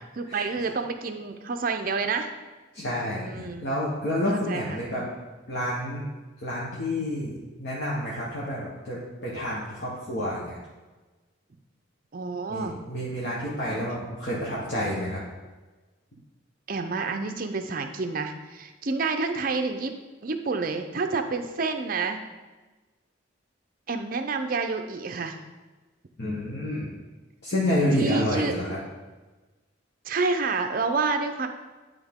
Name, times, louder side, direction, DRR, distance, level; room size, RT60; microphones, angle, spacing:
voice 1, 0.1-2.3 3.3-3.7 4.5-4.8 12.1-12.9 13.7-13.9 16.7-19.9 20.2-22.2 23.9-25.4 28.0-28.5 30.0-31.5, right 4 dB, 45° right, 6 dB, 0.5 m, -29 dB
voice 2, 2.7-5.1 5.5-6.1 6.4-7.3 7.6-10.6 12.5-15.2 26.2-27.0 27.4-28.8, left 1 dB, 55° left, -7 dB, 1.1 m, -29 dB
10.0 x 3.6 x 3.6 m, 1.2 s
head